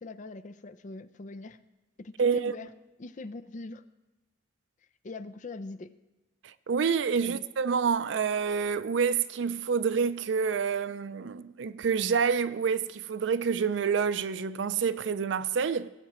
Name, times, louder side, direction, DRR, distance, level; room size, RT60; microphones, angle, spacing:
voice 1, 0.0-1.6 2.0-2.7 3.0-3.8 5.0-5.9 7.2-7.4, left 3 dB, 40° left, 0.5 m, -42 dB
voice 2, 2.2-2.5 6.4-15.9, right 6 dB, 80° right, 0.4 m, -28 dB
18.0 x 8.4 x 3.0 m
head